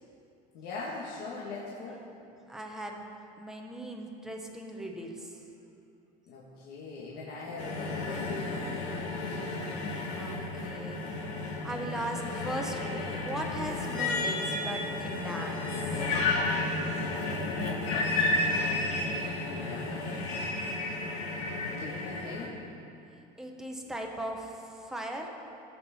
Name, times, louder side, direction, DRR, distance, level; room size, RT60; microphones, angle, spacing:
voice 1, 0.5-2.0 6.3-9.7 17.5-20.5 21.4-22.6, left 3 dB, 60° left, -5 dB, 1.8 m, -42 dB
voice 2, 2.5-3.0 3.4-5.4 10.2-11.0 11.6-15.8 23.1-25.3, right 1 dB, 5° right, 1 dB, 1.0 m, -38 dB
sound 1, 7.6-22.5, left 2 dB, 85° left, 2.4 m, -32 dB
18.0 x 7.5 x 4.3 m, 2.7 s
cardioid pair, 160°, 19 cm